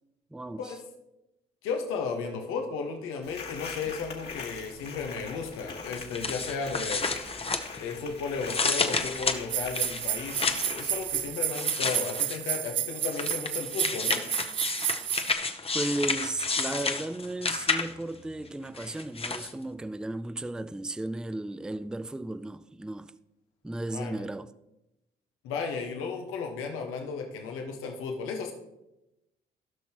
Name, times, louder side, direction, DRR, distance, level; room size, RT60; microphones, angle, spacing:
voice 1, 0.3-0.7 15.7-23.1 23.6-24.5, right 2 dB, 5° right, 0.4 m, -35 dB
voice 2, 1.6-7.1 7.8-14.2 23.9-24.1 25.4-28.5, left 5 dB, 85° left, 1.4 m, -34 dB
sound 1, 3.2-11.3, left 5 dB, 50° left, 2.1 m, -42 dB
sound 2, 5.9-8.0 8.4-10.8 11.5-12.5 13.1-18.1 18.8-19.5, left 4 dB, 25° left, 1.0 m, -31 dB
sound 3, 9.5-15.3, right 11 dB, 65° right, 0.5 m, -31 dB
17.0 x 5.8 x 3.0 m
supercardioid pair, 60°, 21 cm